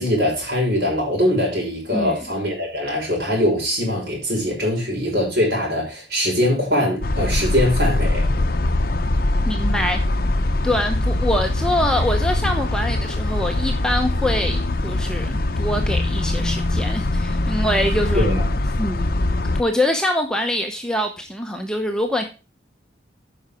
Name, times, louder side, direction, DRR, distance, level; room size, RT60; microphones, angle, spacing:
voice 1, 0.0-8.3 18.1-18.5, left 1 dB, 60° right, 5.8 m, -22 dB
voice 2, 1.9-2.2 9.5-10.0 10.6-19.2 19.6-22.2, left 1 dB, 5° left, 0.8 m, -24 dB
sound 1, 7.0-19.6, left 2 dB, 50° left, 0.7 m, -22 dB
9.4 x 5.9 x 5.0 m
head